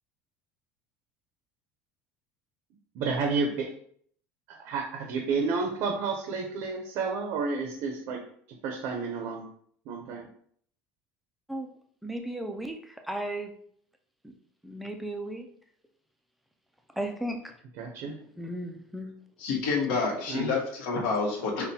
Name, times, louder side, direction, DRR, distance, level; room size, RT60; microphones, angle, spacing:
voice 1, 2.9-3.7 4.5-8.2 8.6-9.5 9.9-10.3 17.8-18.2 20.3-20.5, right 4 dB, 50° right, 2 dB, 0.5 m, -30 dB
voice 2, 12.0-13.5 14.6-15.5 17.0-17.5 18.4-19.1, right 1 dB, ahead, 4 dB, 0.3 m, -35 dB
voice 3, 19.4-21.7, left 4 dB, 80° left, -1 dB, 1.1 m, -28 dB
5.5 x 2.2 x 2.7 m, 0.62 s
cardioid pair, 170°, 6 cm